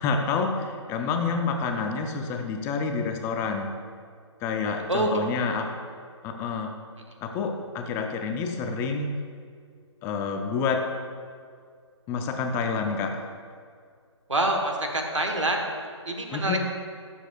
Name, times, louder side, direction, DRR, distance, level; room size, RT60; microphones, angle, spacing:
voice 1, 0.0-3.7 4.4-5.7 6.2-6.7 7.2-9.1 10.0-10.9 12.1-13.3 16.3-16.6, left 5 dB, 15° left, 5 dB, 0.5 m, -28 dB
voice 2, 14.3-15.6 16.1-16.6, right 2 dB, 85° right, 2 dB, 1.3 m, -26 dB
13.0 x 7.1 x 2.4 m, 2.1 s
figure-of-eight pair, 135°, 15 cm